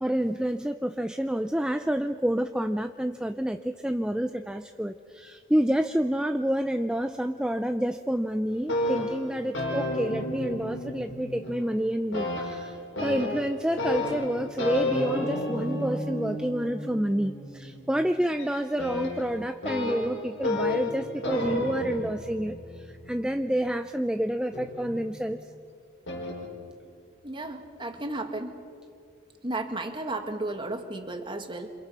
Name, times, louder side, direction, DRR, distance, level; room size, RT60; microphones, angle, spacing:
voice 1, 0.0-12.8 13.0-22.6 23.1-25.4, equal, 5° right, 7 dB, 0.5 m, -28 dB
sound 1, 8.5-11.8 12.1-23.7 24.5-25.4 26.1-26.5, left 1 dB, 65° left, 5.7 m, -32 dB
voice 2, 27.2-28.5 29.4-31.7, right 2 dB, 25° right, 5 dB, 2.0 m, -33 dB
28.0 x 27.0 x 5.6 m, 2.3 s
head